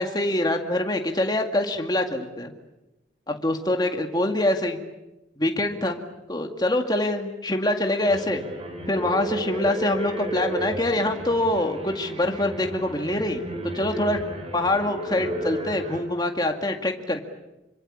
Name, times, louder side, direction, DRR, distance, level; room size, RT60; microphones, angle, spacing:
voice 1, 0.0-2.5 3.3-4.8 5.4-6.0 6.3-8.5 8.9-13.4 13.7-14.2 14.5-17.2, left 1 dB, 20° left, 4 dB, 2.1 m, -25 dB
sound 1, 8.0-16.0, right 1 dB, 30° right, 4.1 m, -33 dB
26.0 x 25.0 x 8.6 m, 0.98 s
head